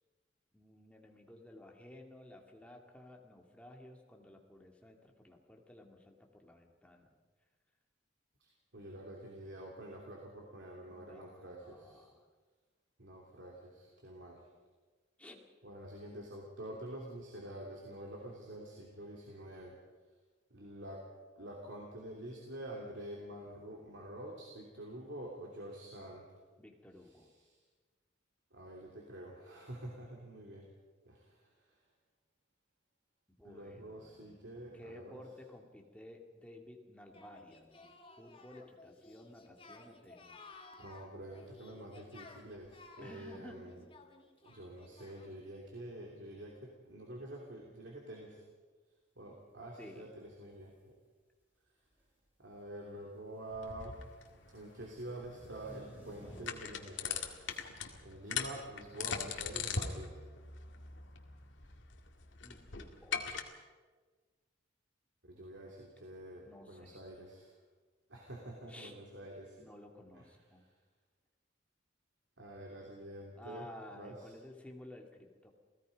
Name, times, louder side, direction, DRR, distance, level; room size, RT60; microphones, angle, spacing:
voice 1, 0.5-7.1 10.9-12.3 15.2-15.4 26.6-27.3 33.4-37.9 38.2-40.4 43.0-43.7 49.8-50.1 62.4-63.2 66.4-67.0 68.7-68.9 69.6-70.7 73.4-75.5, left 1 dB, 5° left, 1 dB, 2.4 m, -54 dB
voice 2, 8.7-12.1 13.0-14.4 15.6-19.8 20.5-21.0 21.4-26.2 28.5-30.7 31.0-31.4 33.4-35.3 40.8-43.8 44.4-48.4 49.2-50.7 52.4-54.0 54.5-57.3 58.0-60.2 65.3-67.5 68.1-69.7 70.1-70.2 72.4-73.7 73.9-74.3, right 1 dB, 65° right, -1 dB, 3.1 m, -47 dB
Singing, 37.1-45.5, left 3 dB, 30° left, 1.8 m, -57 dB
sound 1, 50.5-50.8 51.8-52.2 52.6-56.9 57.4-57.7, equal, 10° right, 7.2 m, -57 dB
sound 2, 53.5-63.4, left 6 dB, 75° left, 2.0 m, -41 dB
28.5 x 17.0 x 5.3 m, 1.4 s
head